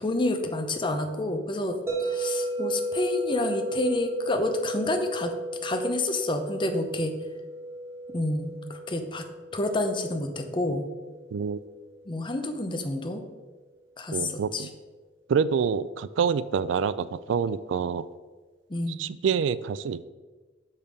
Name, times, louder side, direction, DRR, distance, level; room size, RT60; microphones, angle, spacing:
voice 1, 0.0-5.3 5.6-7.2 8.1-9.3 9.5-10.9 12.1-13.2 14.0-14.7 18.7-19.0, left 2 dB, 25° left, 6 dB, 0.7 m, -29 dB
sound 1, 1.9-11.9, right 2 dB, 15° right, 1.4 m, -34 dB
voice 2, 14.1-14.7 15.3-18.1 19.0-20.0, right 6 dB, 75° right, 16 dB, 0.3 m, -27 dB
6.6 x 5.6 x 5.2 m, 1.3 s
head